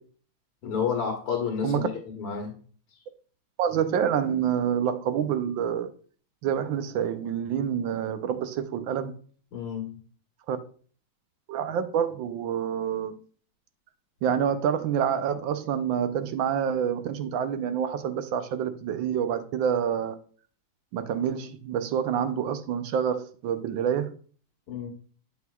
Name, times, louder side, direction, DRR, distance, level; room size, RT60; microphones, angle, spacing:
voice 1, 0.6-1.9 2.2-2.6 9.5-10.0 24.7-24.9, left 7 dB, 80° left, 2.2 m, -30 dB
voice 2, 3.6-5.9 6.4-9.1 10.5-10.6 11.5-13.2 14.2-20.2 20.9-24.1, right 8 dB, 70° right, 1.4 m, -27 dB
7.9 x 5.7 x 2.3 m
omnidirectional pair, 2.4 m